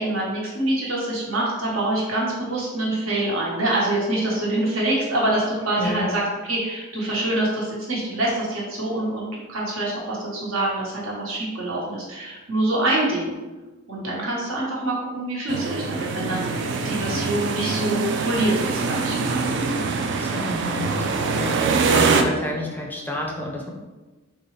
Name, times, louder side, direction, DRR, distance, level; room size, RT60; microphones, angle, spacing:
voice 1, 0.0-13.3 13.9-19.5, right 1 dB, 80° right, -5 dB, 1.2 m, -25 dB
voice 2, 5.8-6.2 20.1-23.7, left 1 dB, 10° left, -1 dB, 0.4 m, -30 dB
sound 1, 15.5-22.2, right 4 dB, 60° right, 0.3 m, -24 dB
4.0 x 2.3 x 3.2 m, 1.2 s
head